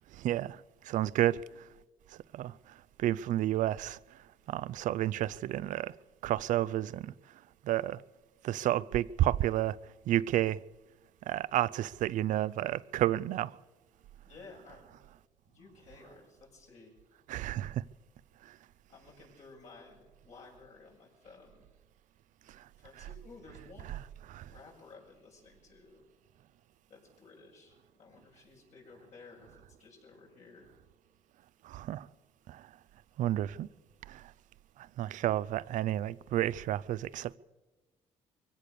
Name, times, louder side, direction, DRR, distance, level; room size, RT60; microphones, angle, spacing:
voice 1, 0.1-1.7 2.3-2.6 3.0-4.2 4.5-5.9 6.2-7.1 7.6-8.0 8.4-9.8 10.1-10.6 11.3-13.6 17.3-17.8 18.4-18.6 22.5-22.7 24.3-24.5 31.6-32.1 32.5-32.7 33.2-33.7 34.1-34.3 34.8-37.4, right 13 dB, 75° right, 0.5 m, -31 dB
voice 2, 14.3-14.9 15.5-16.9 18.9-21.7 22.8-24.1 24.5-26.0 26.9-30.7, left 3 dB, 65° left, 7.4 m, -55 dB
23.0 x 17.0 x 6.7 m
cardioid pair, 90°, 13 cm